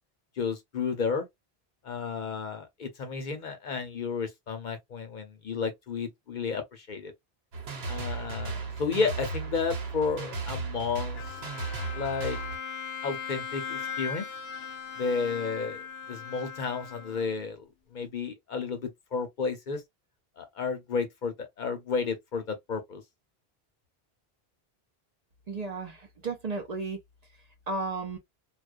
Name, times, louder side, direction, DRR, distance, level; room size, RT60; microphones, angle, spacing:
voice 1, 0.4-1.3 1.8-7.1 7.9-11.4 11.9-12.4 13.0-14.3 15.0-17.7 17.9-19.8 20.4-23.0, left 5 dB, 55° left, 0.7 m, -32 dB
sound 1, 7.5-12.6, right 4 dB, 80° right, 1.1 m, -35 dB
Bowed string instrument, 11.1-17.6, left 6 dB, 85° left, 0.9 m, -39 dB
voice 2, 25.5-27.0 27.7-28.2, right 3 dB, 50° right, 0.5 m, -33 dB
2.3 x 2.2 x 2.4 m
omnidirectional pair, 1.0 m